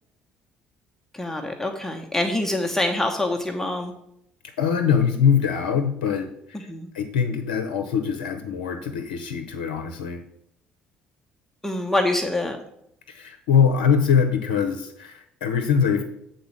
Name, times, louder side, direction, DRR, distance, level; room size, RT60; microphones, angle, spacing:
voice 1, 1.1-3.9 6.7-6.9 11.6-12.6, left 1 dB, 5° left, 2 dB, 1.1 m, -25 dB
voice 2, 4.6-6.7 6.9-10.2 13.1-16.0, left 7 dB, 70° left, 6 dB, 0.7 m, -23 dB
7.9 x 4.1 x 6.5 m, 0.76 s
figure-of-eight pair, 50°, 5 cm